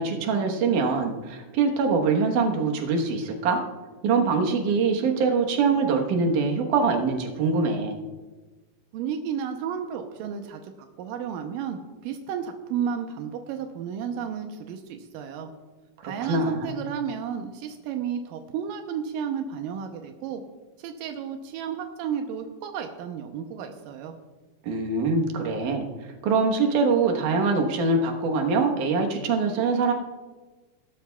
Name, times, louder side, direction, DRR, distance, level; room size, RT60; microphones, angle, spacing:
voice 1, 0.0-3.6 4.0-8.0 16.0-16.8 24.6-25.9 26.2-29.9, right 4 dB, 75° right, 2 dB, 2.7 m, -23 dB
voice 2, 8.9-10.7 11.0-15.5 16.0-20.4 20.8-24.2, right 7 dB, 90° right, 5 dB, 2.4 m, -32 dB
20.5 x 12.0 x 2.3 m, 1.3 s
omnidirectional pair, 3.8 m